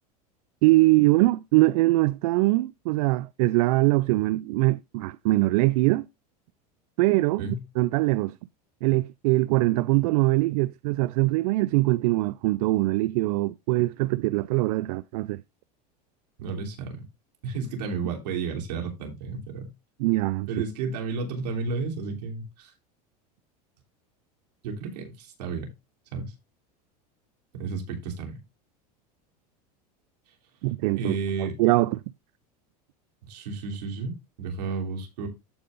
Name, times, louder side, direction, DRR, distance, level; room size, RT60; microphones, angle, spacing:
voice 1, 0.6-6.1 7.0-7.5 7.8-8.3 8.8-15.4 20.0-20.6 30.6-31.2 31.6-32.0, right 20 dB, 70° right, 0.4 m, -22 dB
voice 2, 16.4-17.0 17.4-19.7 20.5-22.7 24.6-25.7 26.1-26.3 27.5-28.4 31.0-31.5 33.2-35.3, right 4 dB, 85° right, 3.2 m, -32 dB
14.0 x 5.3 x 2.6 m
supercardioid pair, 125°, 20 cm